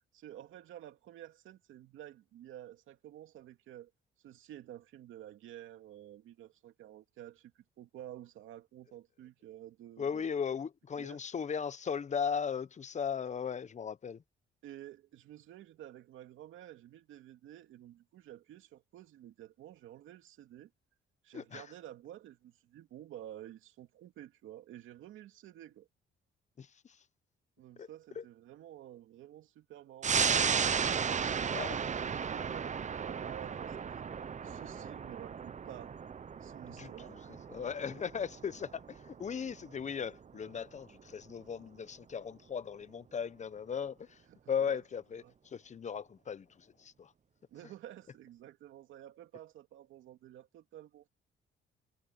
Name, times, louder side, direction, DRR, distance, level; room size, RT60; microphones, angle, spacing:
voice 1, 0.1-3.9 4.2-10.3 11.0-11.2 14.6-20.7 21.2-25.9 27.6-30.2 31.1-34.1 34.4-35.9 36.4-37.5 44.3-44.8 45.2-45.3 47.5-51.1, right 12 dB, 80° right, 2.5 m, -51 dB
voice 2, 10.0-14.2 21.3-21.7 26.6-27.0 27.8-27.9 28.1-28.2 31.5-31.8 36.7-47.1, left 7 dB, 35° left, 0.9 m, -37 dB
sound 1, 30.0-41.0 41.4-41.5, right 6 dB, 35° right, 0.9 m, -35 dB
cardioid pair, 90°, 20 cm